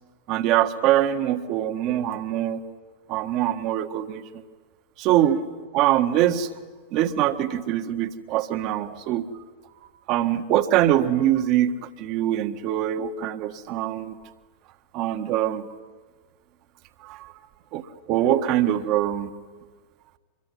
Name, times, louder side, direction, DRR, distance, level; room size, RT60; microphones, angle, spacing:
voice 1, 0.3-2.6 3.1-4.2 5.0-5.4 5.7-6.5 6.9-9.3 10.1-14.2 14.9-15.8 17.0-17.3 17.7-19.3, right 12 dB, 40° right, 9 dB, 1.7 m, -23 dB
25.5 x 23.5 x 9.8 m, 1.4 s
figure-of-eight pair, 90°, 0 cm